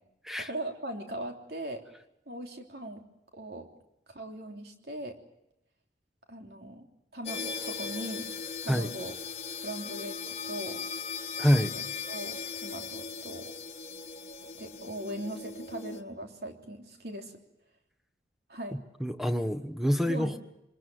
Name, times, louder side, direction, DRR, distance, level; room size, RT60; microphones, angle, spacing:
voice 1, 0.4-1.8 2.3-3.1 3.3-3.7 4.1-5.2 6.3-6.9 7.1-8.3 8.6-9.1 9.4-10.8 11.6-13.5 14.5-17.4 18.5-18.8 20.1-20.4, right 1 dB, 60° right, 3 dB, 3.3 m, -40 dB
sound 1, 7.2-16.0, left 6 dB, 35° left, 1.5 m, -38 dB
voice 2, 11.4-11.7 19.0-20.4, equal, ahead, 8 dB, 1.1 m, -26 dB
26.0 x 21.0 x 7.7 m, 0.88 s
head